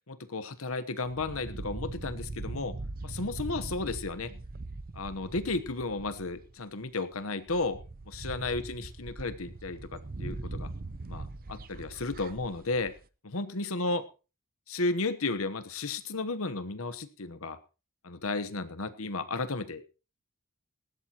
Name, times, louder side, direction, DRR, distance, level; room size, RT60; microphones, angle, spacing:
voice 1, 0.1-2.7 3.0-4.3 4.9-7.8 8.1-10.7 11.1-12.9 13.2-14.1 14.7-17.6 18.0-19.9, left 3 dB, 75° left, 12 dB, 1.1 m, -33 dB
sound 1, 1.0-6.6 7.1-7.2 7.5-13.0, right 2 dB, 45° right, 0.7 m, -41 dB
19.0 x 15.5 x 3.0 m, 0.33 s
head